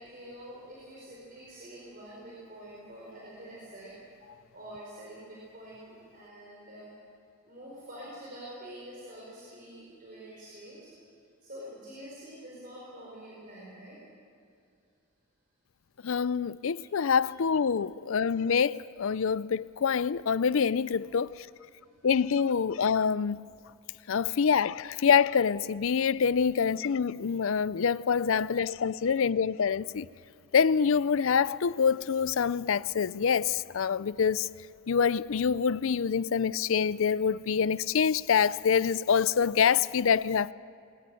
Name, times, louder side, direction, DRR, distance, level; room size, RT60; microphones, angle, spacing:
voice 1, 0.0-3.9 4.5-6.9 7.4-10.9 11.4-14.0 16.7-16.9 21.7-22.1, right 1 dB, 40° right, 4.9 m, -46 dB
voice 2, 16.0-21.5 22.0-23.4 24.1-30.1 30.5-34.5 34.9-40.5, left 6 dB, 60° left, 0.4 m, -26 dB
21.5 x 20.0 x 7.7 m
head